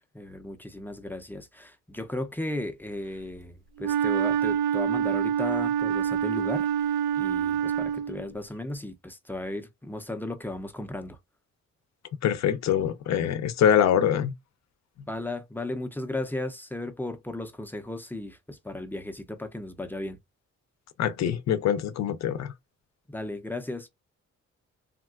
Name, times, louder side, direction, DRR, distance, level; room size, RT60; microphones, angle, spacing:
voice 1, 0.0-11.2 15.1-20.2 23.1-23.9, left 2 dB, 5° left, 0.4 m, -35 dB
Wind instrument woodwind instrument, 3.8-8.3, right 9 dB, 80° right, 0.6 m, -26 dB
voice 2, 12.2-14.3 21.0-22.5, left 9 dB, 65° left, 0.6 m, -24 dB
3.6 x 2.3 x 2.3 m
cardioid pair, 115°, 30 cm